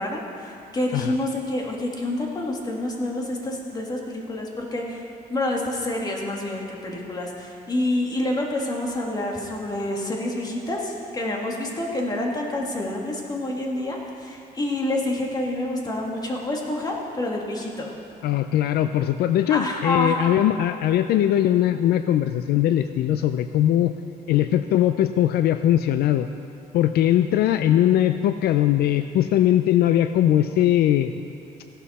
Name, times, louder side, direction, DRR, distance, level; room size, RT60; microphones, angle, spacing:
voice 1, 0.0-17.9 19.5-20.2, left 1 dB, 25° left, -1 dB, 1.8 m, -28 dB
voice 2, 18.2-23.9 24.3-26.3 26.7-31.1, left 12 dB, 70° left, 10 dB, 0.4 m, -20 dB
15.5 x 11.5 x 4.2 m, 2.6 s
cardioid pair, 135°, 17 cm